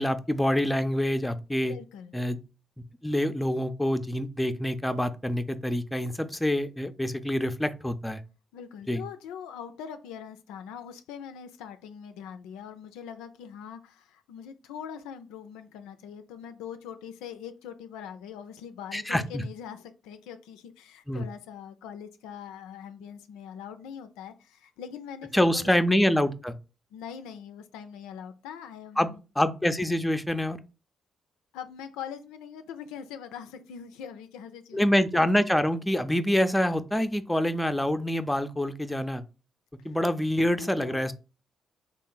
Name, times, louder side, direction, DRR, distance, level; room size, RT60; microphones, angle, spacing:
voice 1, 0.0-1.7 2.1-2.4 3.0-8.2 8.9-9.0 18.9-19.4 21.1-21.2 25.3-26.5 29.0-29.1 29.4-30.6 34.7-39.2 39.8-41.1, left 1 dB, 10° left, 0.4 m, -26 dB
voice 2, 1.7-2.2 8.5-25.7 26.9-29.2 31.5-34.8 40.3-41.0, left 8 dB, 85° left, 0.3 m, -42 dB
3.3 x 2.4 x 3.7 m
hypercardioid pair, 50°, 0 cm